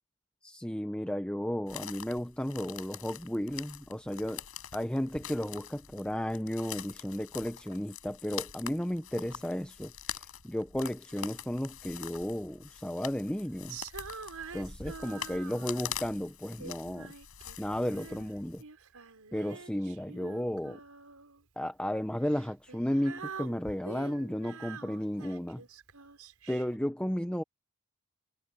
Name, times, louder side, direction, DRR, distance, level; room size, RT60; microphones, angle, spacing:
voice 1, 0.4-4.4 4.7-9.9 10.4-13.8 14.5-17.1 17.6-18.6 19.3-20.8 21.6-25.6 26.5-27.4, equal, 5° left, 0.8 m, -33 dB
sound 1, 1.7-18.6, left 8 dB, 75° left, 7.2 m, -44 dB
Female singing, 13.7-16.1 16.6-18.3 18.6-21.4 22.2-26.8, right 5 dB, 90° right, 5.4 m, -46 dB
head